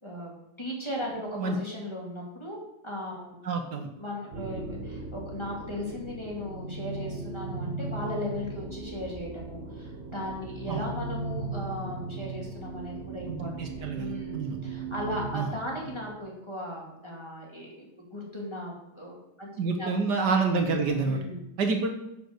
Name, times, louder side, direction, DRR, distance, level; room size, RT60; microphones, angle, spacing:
voice 1, 0.0-3.4 3.7-19.9 21.0-21.5, left 1 dB, 15° left, -3 dB, 2.3 m, -37 dB
voice 2, 3.4-3.9 10.7-10.8 13.3-14.6 15.3-15.5 19.6-21.2 21.6-21.9, right 4 dB, 70° right, 4 dB, 1.7 m, -28 dB
sound 1, 4.3-16.3, right 3 dB, 40° right, 1.2 m, -38 dB
9.8 x 5.2 x 6.6 m, 0.84 s
omnidirectional pair, 2.0 m